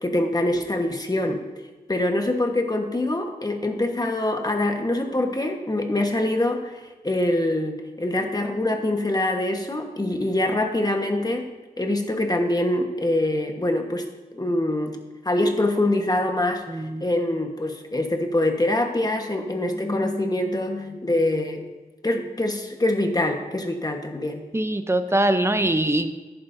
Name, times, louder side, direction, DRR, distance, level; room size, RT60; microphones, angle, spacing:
voice 1, 0.0-1.4 1.9-11.4 11.8-14.0 14.3-15.0 15.2-16.6 17.0-21.7 22.0-24.4, left 1 dB, 25° left, 4 dB, 1.3 m, -24 dB
voice 2, 16.7-17.0 24.5-26.1, right 1 dB, 15° right, 8 dB, 0.7 m, -22 dB
14.0 x 11.0 x 2.7 m, 1.2 s
wide cardioid pair, 85°, 16 cm